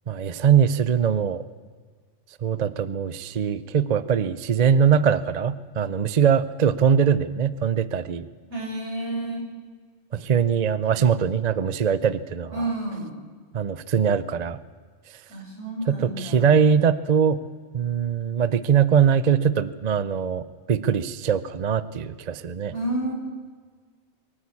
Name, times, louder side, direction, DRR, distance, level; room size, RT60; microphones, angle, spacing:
voice 1, 0.1-1.4 2.4-8.3 10.1-12.7 13.5-14.6 15.1-15.2 15.9-17.4 17.7-22.7, right 7 dB, 45° right, 15 dB, 0.7 m, -22 dB
voice 2, 8.5-9.5 12.5-13.1 15.3-16.6 22.7-23.1, right 1 dB, 85° right, -2 dB, 6.5 m, -30 dB
23.0 x 14.0 x 8.5 m, 1.6 s
omnidirectional pair, 1.2 m